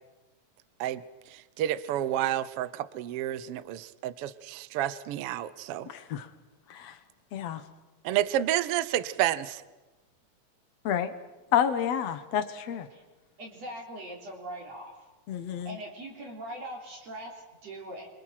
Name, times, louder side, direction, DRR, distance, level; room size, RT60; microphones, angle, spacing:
voice 1, 1.3-5.9 8.0-9.6, right 12 dB, 75° right, 15 dB, 1.3 m, -30 dB
voice 2, 5.9-6.3 6.7-7.0 7.3-7.6 10.8-11.1 11.5-12.9 15.3-15.8, left 9 dB, 60° left, 11 dB, 2.1 m, -29 dB
voice 3, 13.4-15.1 15.6-18.1, right 1 dB, 50° right, -1 dB, 4.8 m, -41 dB
28.0 x 24.5 x 5.9 m, 1.2 s
omnidirectional pair, 3.8 m